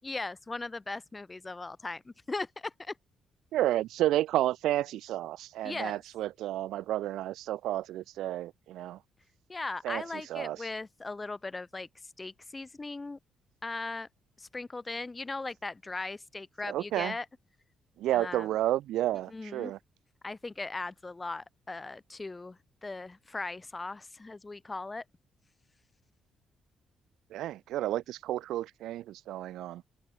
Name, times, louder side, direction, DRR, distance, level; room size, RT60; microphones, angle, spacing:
voice 1, 0.0-2.9 5.6-6.0 9.5-11.9 12.2-13.2 13.6-14.1 14.4-17.2 18.1-18.5 19.3-19.7 20.2-25.0, left 3 dB, 20° left, 6.0 m, -38 dB
voice 2, 3.5-9.0 9.8-10.7 16.6-17.2 18.0-19.8 27.3-29.8, right 14 dB, 85° right, 2.9 m, -31 dB
cardioid pair, 90°, 0 cm